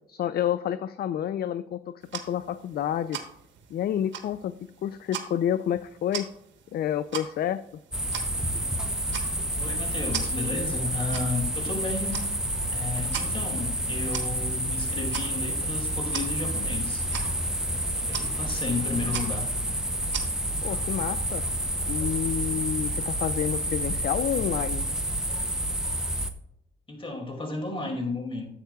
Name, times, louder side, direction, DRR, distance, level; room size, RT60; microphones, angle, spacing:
voice 1, 0.1-3.2 3.7-6.3 6.7-7.6 20.6-21.4 21.9-24.9, left 10 dB, 50° left, 13 dB, 0.4 m, -29 dB
sound 1, 2.0-20.8, right 8 dB, 65° right, 1.3 m, -42 dB
sound 2, 7.9-26.3, right 1 dB, 5° right, 0.7 m, -29 dB
voice 2, 9.6-12.2 12.7-17.0 18.0-19.4 26.9-28.5, left 3 dB, 25° left, 3 dB, 2.4 m, -33 dB
10.5 x 7.8 x 2.4 m, 0.78 s
cardioid pair, 90°, 20 cm